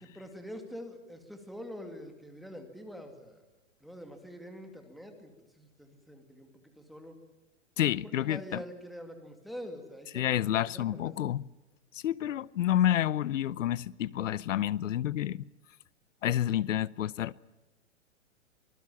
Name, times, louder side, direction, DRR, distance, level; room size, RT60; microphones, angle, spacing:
voice 1, 0.2-3.5 3.8-7.2 8.0-11.0, equal, ahead, 2.4 m, -45 dB
voice 2, 7.8-8.6 10.1-11.4 11.9-15.4 16.2-17.3, left 12 dB, 75° left, 0.8 m, -29 dB
25.0 x 20.0 x 7.2 m
hypercardioid pair, 155°, 38 cm